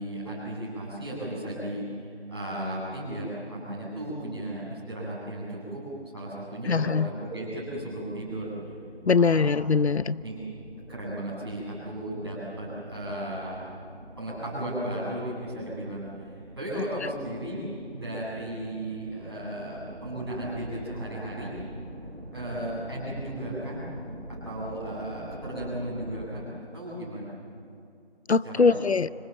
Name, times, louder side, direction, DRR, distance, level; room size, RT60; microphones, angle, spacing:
voice 1, 0.0-1.9 2.3-5.8 6.1-8.5 9.1-9.5 10.2-10.4 10.9-13.6 14.2-17.7 17.9-21.5 22.3-23.9 24.3-26.4 26.7-27.3 28.4-28.8, right 1 dB, 25° right, -7 dB, 8.0 m, -35 dB
voice 2, 6.7-7.1 9.1-10.2 28.3-29.1, left 5 dB, 80° left, 18 dB, 0.6 m, -22 dB
sound 1, 7.5-26.3, right 1 dB, 60° right, 5.7 m, -45 dB
26.0 x 19.0 x 7.5 m, 2.5 s
figure-of-eight pair, 175°, 32 cm